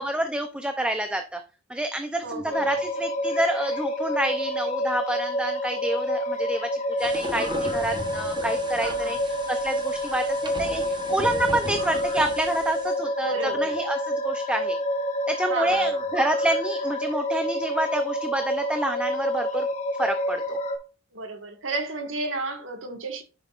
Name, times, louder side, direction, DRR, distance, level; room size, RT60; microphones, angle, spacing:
voice 1, 0.0-1.4 1.7-6.7 7.0-14.8 15.3-19.7 20.0-20.6, right 1 dB, 5° right, 0.5 m, -28 dB
voice 2, 2.2-2.7 8.8-9.2 13.2-13.8 15.5-16.0 21.1-23.2, right 2 dB, 70° right, 1.7 m, -32 dB
sound 1, 2.5-20.8, equal, 35° left, 1.4 m, -28 dB
sound 2, 7.0-12.9, right 2 dB, 25° right, 1.0 m, -37 dB
10.0 x 5.7 x 2.5 m
head